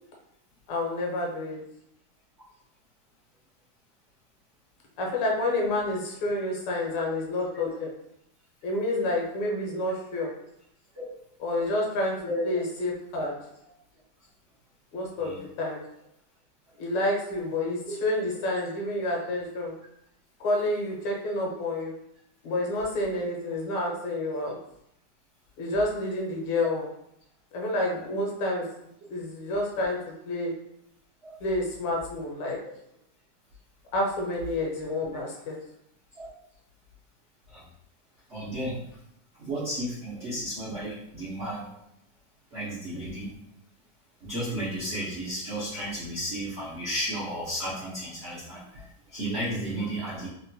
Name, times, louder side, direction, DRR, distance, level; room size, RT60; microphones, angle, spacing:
voice 1, 0.7-1.6 5.0-7.9 8.6-10.3 11.4-12.2 12.4-13.3 14.9-15.8 16.8-19.7 20.4-21.9 22.4-24.6 25.6-26.9 27.5-28.6 29.1-30.0 30.3-30.5 31.4-32.6 33.9-35.5, left 1 dB, 80° left, -1 dB, 1.7 m, -29 dB
voice 2, 12.3-12.6 15.2-15.4 17.9-18.0 31.2-31.3 32.4-32.5 36.2-36.3 37.5-37.6 38.3-38.8 39.4-41.7 42.5-43.3 44.3-50.3, equal, 90° right, -8 dB, 0.5 m, -33 dB
3.7 x 2.2 x 2.6 m, 0.77 s
omnidirectional pair, 2.4 m